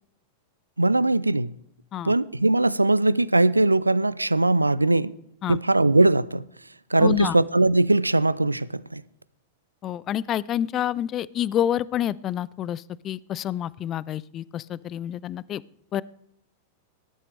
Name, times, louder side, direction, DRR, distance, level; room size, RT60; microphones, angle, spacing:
voice 1, 0.8-1.5 2.0-5.1 5.5-6.4 6.9-9.0, right 2 dB, 85° right, 0.4 m, -20 dB
voice 2, 7.0-7.4 9.8-15.6 15.9-16.0, left 11 dB, 30° left, 0.4 m, -28 dB
18.5 x 11.5 x 3.3 m
figure-of-eight pair, 95°, 0 cm